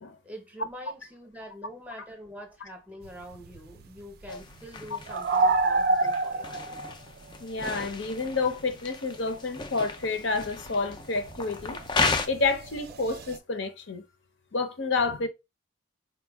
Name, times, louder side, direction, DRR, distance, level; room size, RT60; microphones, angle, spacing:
voice 1, 0.2-6.8, equal, 5° right, 0.7 m, -45 dB
sound 1, 3.0-9.2 9.4-13.4, right 3 dB, 50° right, 0.4 m, -29 dB
sound 2, 4.3-12.3, left 4 dB, 20° left, 0.3 m, -34 dB
voice 2, 4.9-5.2 7.4-11.8 12.3-14.0 14.5-15.3, left 3 dB, 65° left, 0.7 m, -29 dB
4.4 x 2.2 x 3.4 m
head